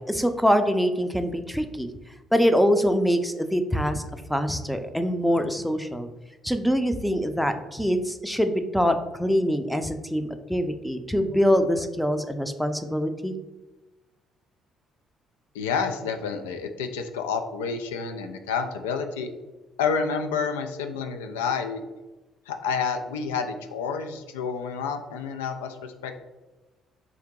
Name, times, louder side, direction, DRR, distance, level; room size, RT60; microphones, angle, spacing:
voice 1, 0.0-1.9 2.3-4.0 4.3-6.1 6.4-13.3, equal, ahead, 8 dB, 0.5 m, -24 dB
voice 2, 15.5-19.3 19.8-21.8 22.5-26.2, left 5 dB, 90° left, 6 dB, 0.3 m, -29 dB
3.7 x 2.8 x 3.6 m, 1.1 s
hypercardioid pair, 55°, 0 cm